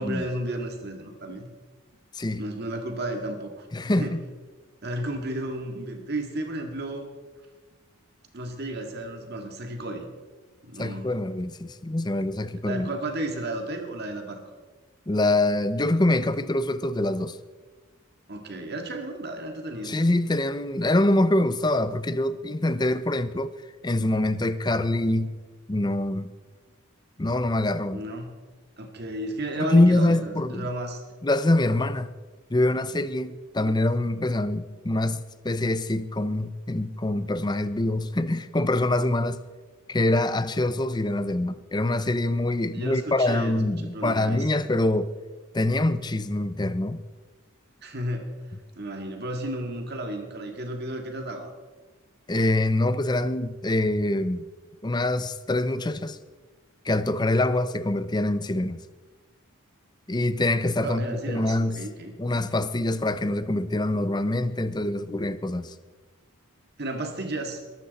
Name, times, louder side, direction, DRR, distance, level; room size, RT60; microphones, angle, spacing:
voice 1, 0.0-1.5 2.4-3.7 3.9-4.2 4.8-7.1 8.3-10.1 10.6-11.1 12.6-14.4 18.3-20.0 27.9-28.4 28.8-31.0 42.7-44.5 47.8-48.3 48.8-51.5 60.8-62.1 66.8-67.6, right 1 dB, 50° right, 1.9 m, -33 dB
voice 2, 3.7-4.2 10.8-12.9 15.1-17.4 19.8-23.6 23.8-25.3 25.7-26.3 27.2-28.0 29.6-30.7 31.2-32.1 32.5-39.4 39.9-45.1 45.5-47.0 52.3-54.5 54.8-56.2 56.8-58.8 60.1-61.8 62.2-65.7, left 1 dB, 20° left, 0.6 m, -25 dB
22.0 x 12.0 x 4.2 m
head